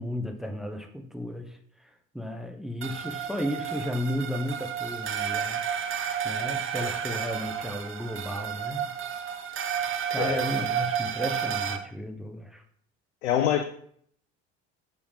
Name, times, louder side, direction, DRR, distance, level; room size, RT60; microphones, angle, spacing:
voice 1, 0.0-1.6 2.1-5.6 6.2-8.9 10.1-12.6, equal, ahead, 6 dB, 0.9 m, -33 dB
sound 1, 2.8-11.8, right 8 dB, 40° right, 0.8 m, -31 dB
voice 2, 13.2-13.6, left 10 dB, 90° left, 10 dB, 0.5 m, -25 dB
7.0 x 3.5 x 5.1 m, 0.63 s
hypercardioid pair, 65°, 34 cm